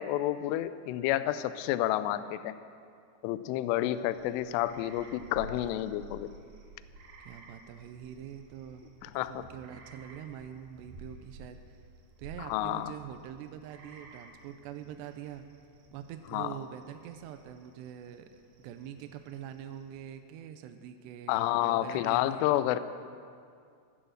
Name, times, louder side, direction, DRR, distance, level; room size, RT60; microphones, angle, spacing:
voice 1, 0.0-2.6 3.2-6.3 9.0-9.5 12.4-12.9 16.3-16.5 21.3-22.8, left 14 dB, 85° left, 13 dB, 2.5 m, -30 dB
sound 1, 3.9-20.1, right 3 dB, 60° right, 2.9 m, -53 dB
voice 2, 7.2-11.8 12.2-15.4 15.9-22.8, right 9 dB, 80° right, 8 dB, 2.6 m, -44 dB
15.0 x 11.0 x 6.5 m, 2.2 s
omnidirectional pair, 5.4 m